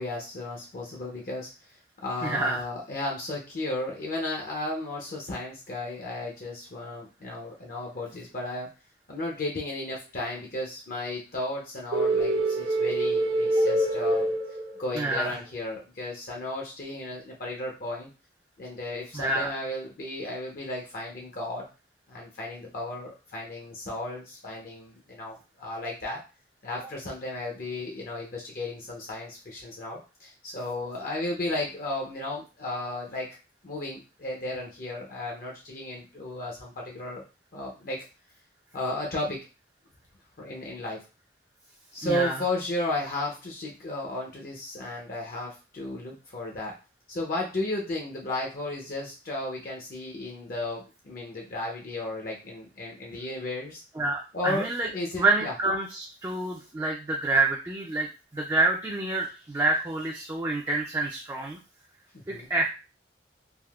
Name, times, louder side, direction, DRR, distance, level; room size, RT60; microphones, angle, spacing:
voice 1, 0.0-8.7 9.1-14.4 14.8-18.1 18.6-21.7 22.1-26.2 26.6-33.3 33.6-37.2 37.5-38.0 38.7-39.4 40.4-41.0 41.9-46.7 47.1-53.8 54.3-55.5 62.1-62.5, left 2 dB, 45° left, -1 dB, 0.6 m, -34 dB
voice 2, 2.2-2.6 15.0-15.3 19.1-19.5 42.0-42.3 54.0-54.9 55.2-58.1 58.3-61.6 62.3-62.7, right 2 dB, 15° right, -1 dB, 0.3 m, -27 dB
sound 1, 11.9-15.1, right 1 dB, 60° right, 0.6 m, -25 dB
3.4 x 2.5 x 2.3 m, 0.31 s
head